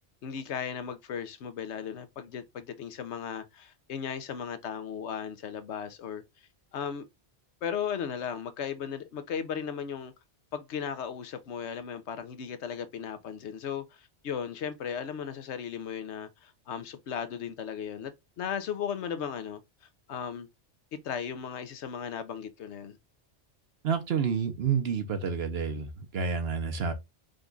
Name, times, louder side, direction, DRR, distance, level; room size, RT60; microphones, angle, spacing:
voice 1, 0.2-6.2 6.7-7.1 7.6-10.1 10.5-19.6 20.1-20.5 20.9-23.0, left 7 dB, 80° left, 1.0 m, -36 dB
voice 2, 23.8-26.9, right 6 dB, 65° right, 1.0 m, -29 dB
5.2 x 2.3 x 3.8 m
omnidirectional pair, 1.1 m